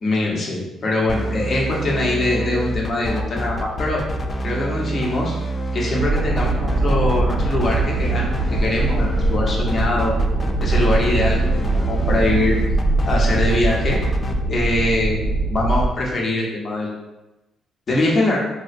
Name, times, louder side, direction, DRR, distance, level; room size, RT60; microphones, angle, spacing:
voice 1, 0.0-4.0 4.4-5.3 5.7-10.1 10.6-12.6 13.1-14.0 14.5-15.2 15.5-16.9 17.9-18.4, left 2 dB, 45° left, -2 dB, 0.9 m, -22 dB
sound 1, 1.1-14.3, right 1 dB, 30° left, 0.4 m, -27 dB
sound 2, 6.0-15.9, right 2 dB, 65° right, 0.5 m, -22 dB
4.1 x 2.3 x 2.5 m, 0.99 s
cardioid pair, 90°, 0 cm